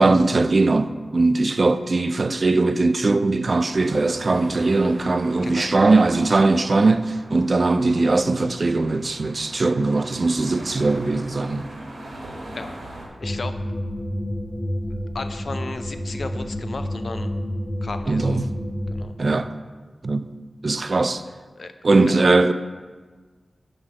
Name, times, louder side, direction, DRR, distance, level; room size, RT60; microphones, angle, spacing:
voice 1, 0.0-11.7 18.1-18.4 19.2-19.5 20.0-20.3 20.6-21.2 21.8-22.5, right 3 dB, 50° right, 0.3 m, -20 dB
sound 1, 3.7-13.1, right 1 dB, 80° right, 1.4 m, -40 dB
voice 2, 12.5-13.6 15.1-17.3 17.8-18.4 18.9-19.1 21.6-21.7 22.1-22.3, left 3 dB, 65° left, 0.4 m, -35 dB
sound 2, 13.2-19.1, equal, 30° left, 1.0 m, -29 dB
6.4 x 3.8 x 6.0 m
wide cardioid pair, 65°, 0 cm